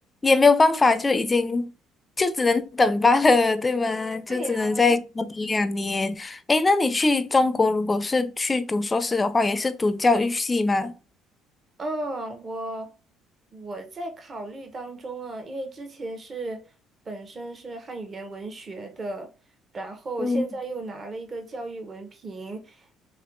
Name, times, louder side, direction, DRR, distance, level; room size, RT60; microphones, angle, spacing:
voice 1, 0.2-1.7 2.2-11.0 20.2-20.4, left 3 dB, 25° left, 0.4 m, -22 dB
voice 2, 4.3-5.0 11.8-12.9 13.5-16.6 17.1-19.3 19.7-22.9, right 2 dB, 40° right, 0.8 m, -35 dB
3.3 x 2.6 x 2.5 m
supercardioid pair, 75°, 0 cm